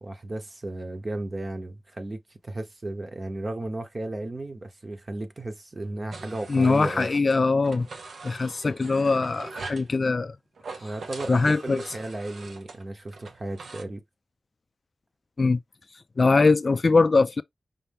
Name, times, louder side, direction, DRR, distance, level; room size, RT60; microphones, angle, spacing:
voice 1, 0.0-7.1 10.8-14.0, right 2 dB, 35° right, 0.9 m, -34 dB
sound 1, 6.1-7.4 7.6-9.9 10.6-13.8, right 3 dB, 85° right, 0.8 m, -42 dB
voice 2, 6.5-7.9 8.2-10.3 11.3-11.8 15.4-15.6 16.2-17.4, left 3 dB, 40° left, 0.3 m, -22 dB
5.4 x 2.6 x 3.5 m
wide cardioid pair, 125°, 0 cm